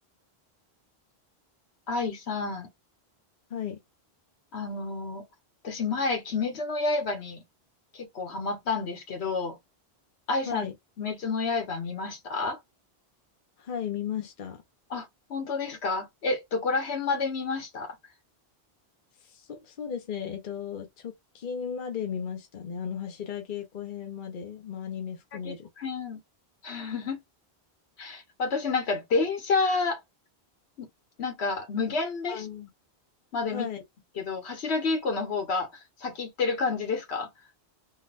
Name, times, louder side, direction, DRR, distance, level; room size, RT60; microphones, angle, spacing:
voice 1, 1.9-2.7 4.5-5.2 5.6-7.4 7.9-9.6 10.3-10.7 11.0-12.6 14.9-18.0 25.3-25.5 25.8-26.2 26.6-27.2 28.0-30.0 30.8-30.9 31.2-32.5 33.3-33.7 34.2-37.3, left 4 dB, 85° left, 1.2 m, -29 dB
voice 2, 13.6-14.6 19.2-25.7 32.3-32.7 33.5-33.8, left 8 dB, 55° left, 0.9 m, -35 dB
3.8 x 2.2 x 2.5 m
omnidirectional pair, 1.1 m